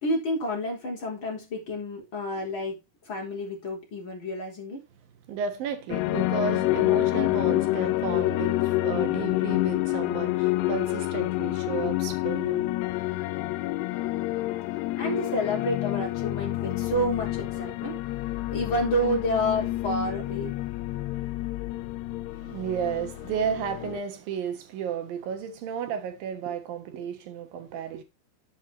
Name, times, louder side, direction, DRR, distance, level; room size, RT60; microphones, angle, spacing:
voice 1, 0.0-2.8 3.0-4.9 14.9-18.0 18.5-20.5, equal, 30° left, 4.4 m, -29 dB
voice 2, 5.3-12.7 13.6-13.9 22.4-28.0, right 7 dB, 65° right, 2.9 m, -33 dB
sound 1, 5.9-24.0, left 18 dB, 90° left, 2.9 m, -28 dB
10.5 x 8.5 x 3.0 m
omnidirectional pair, 4.7 m